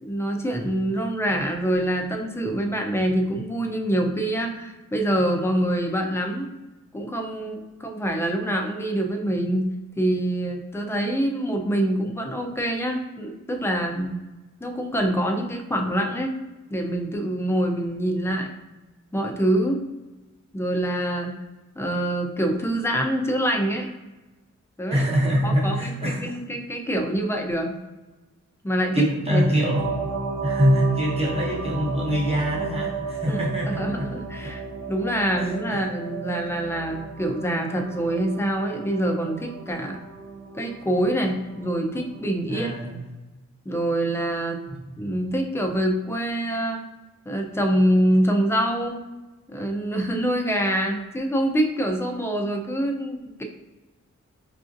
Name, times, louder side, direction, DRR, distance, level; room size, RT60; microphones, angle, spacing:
voice 1, 0.0-6.5 6.9-9.7 10.0-14.2 14.6-16.4 16.7-18.5 19.1-19.8 20.5-21.3 21.8-23.9 24.8-25.0 25.4-25.9 26.2-27.8 28.6-29.5 33.2-33.4 33.7-34.6 34.9-40.0 40.5-42.7 43.7-44.6 45.0-46.8 47.3-49.0 49.5-53.4, right 1 dB, 10° left, 2 dB, 0.4 m, -25 dB
voice 2, 24.9-26.4 28.9-29.8 30.4-34.1 34.4-34.5 35.7-35.8 42.5-43.0 44.7-44.9, equal, 20° right, -3 dB, 0.9 m, -24 dB
sound 1, 29.7-42.3, right 5 dB, 55° right, 0.5 m, -34 dB
4.8 x 2.5 x 2.5 m, 1.1 s
wide cardioid pair, 150°, 30 cm